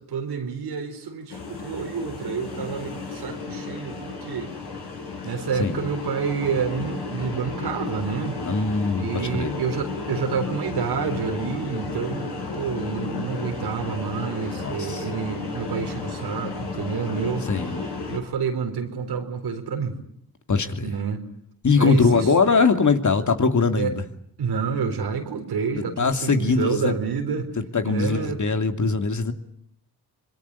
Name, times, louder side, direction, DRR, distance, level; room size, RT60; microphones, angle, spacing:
voice 1, 0.0-4.5 5.2-8.4 8.9-17.5 18.1-20.0 20.8-21.2 21.8-22.3 23.8-23.9 24.4-27.5 27.8-28.4 28.8-28.9, right 6 dB, 90° right, 4.3 m, -28 dB
sound 1, 1.3-18.2, left 4 dB, 85° left, 7.7 m, -33 dB
voice 2, 8.5-9.6 14.6-15.1 17.5-17.8 20.5-20.9 21.6-24.0 26.0-26.9 27.6-29.3, left 4 dB, 50° left, 2.7 m, -21 dB
25.5 x 23.0 x 9.8 m
cardioid pair, 65°, 38 cm